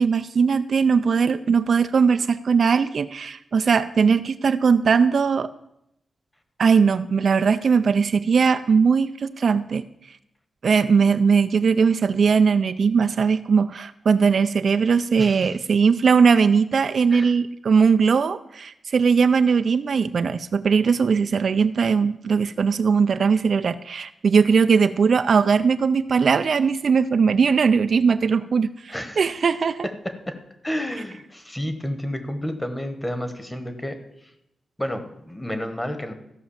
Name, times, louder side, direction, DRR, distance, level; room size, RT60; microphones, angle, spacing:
voice 1, 0.0-5.5 6.6-9.8 10.6-29.9, right 5 dB, 55° right, 11 dB, 0.4 m, -19 dB
voice 2, 15.2-15.6 17.1-17.3 28.9-29.3 30.3-30.4 30.6-34.3 34.8-36.1, equal, 10° left, 8 dB, 1.2 m, -31 dB
14.5 x 6.1 x 7.1 m, 0.82 s
wide cardioid pair, 135°, 0 cm